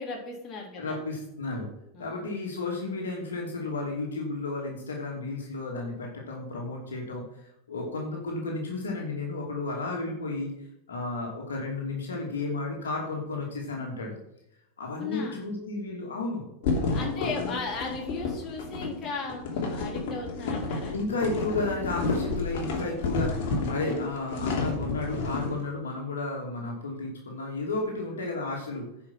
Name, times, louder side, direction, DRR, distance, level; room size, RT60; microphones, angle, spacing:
voice 1, 0.0-1.0 1.9-2.3 15.0-15.4 16.9-21.0, left 4 dB, 35° left, -1 dB, 3.5 m, -36 dB
voice 2, 0.8-1.7 2.0-7.2 7.7-10.5 10.9-14.1 14.8-16.5 17.2-17.6 20.9-28.9, left 3 dB, 80° left, -1 dB, 2.6 m, -33 dB
sound 1, 16.6-25.6, left 3 dB, 60° left, 2.8 m, -31 dB
10.0 x 5.8 x 6.2 m, 0.80 s
hypercardioid pair, 90°, 0 cm